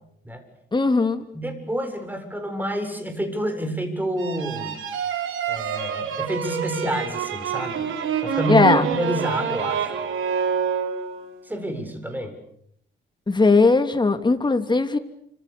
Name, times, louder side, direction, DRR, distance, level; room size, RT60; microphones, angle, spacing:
voice 1, 0.7-1.2 8.5-8.9 13.3-15.0, left 3 dB, 20° left, 7 dB, 2.9 m, -18 dB
voice 2, 1.3-4.7 5.5-7.9 8.2-9.9 11.5-12.4, right 1 dB, 10° right, 7 dB, 7.4 m, -28 dB
sound 1, 4.2-11.4, right 7 dB, 85° right, 4.9 m, -27 dB
29.5 x 27.0 x 7.0 m, 0.71 s
cardioid pair, 100°, 20 cm